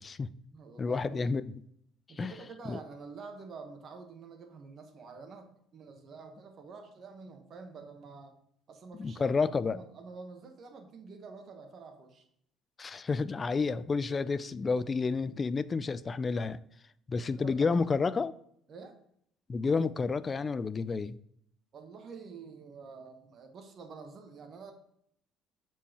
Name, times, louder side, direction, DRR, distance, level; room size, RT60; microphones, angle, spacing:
voice 1, 0.0-0.3 0.8-1.5 2.2-2.3 2.7-2.8 9.0-9.8 12.8-16.6 17.1-18.3 19.5-21.2, left 4 dB, 30° left, 0.3 m, -30 dB
voice 2, 0.5-1.2 2.1-8.4 8.7-12.2 17.3-17.8 18.7-19.0 21.7-24.7, right 4 dB, 50° right, 1.2 m, -48 dB
7.1 x 4.5 x 2.9 m
supercardioid pair, 95°, 0 cm